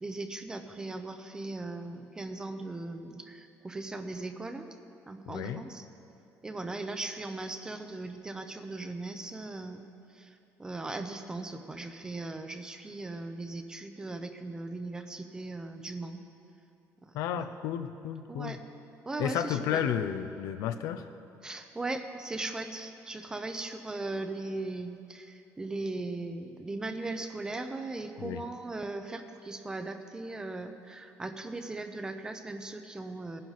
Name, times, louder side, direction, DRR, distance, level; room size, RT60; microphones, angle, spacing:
voice 1, 0.0-4.7 5.1-5.8 6.4-9.8 10.1-16.2 17.0-17.5 18.3-18.6 19.1-19.8 21.4-33.4, right 2 dB, 10° right, 8 dB, 0.6 m, -38 dB
voice 2, 5.3-5.6 17.1-18.6 19.2-21.1 28.2-28.4, left 9 dB, 75° left, 9 dB, 0.6 m, -32 dB
18.5 x 11.0 x 4.1 m, 2.7 s
cardioid pair, 170°, 6 cm